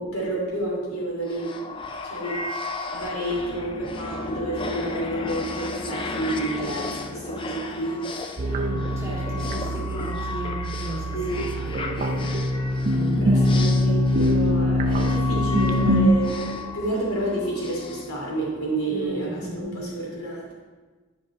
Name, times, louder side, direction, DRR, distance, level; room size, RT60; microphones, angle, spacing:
voice 1, 0.0-1.8 2.0-2.4 2.9-8.4 9.0-9.6 11.1-11.5 13.2-20.6, right 1 dB, 85° left, -4 dB, 2.7 m, -30 dB
sound 1, 1.3-18.9, left 3 dB, 25° left, 0.4 m, -34 dB
voice 2, 8.4-12.3 12.8-13.7 18.9-19.9, right 1 dB, 15° right, -6 dB, 2.0 m, -35 dB
sound 2, 8.4-16.1, left 1 dB, 35° right, 0.6 m, -23 dB
9.6 x 5.2 x 4.3 m, 1.3 s
head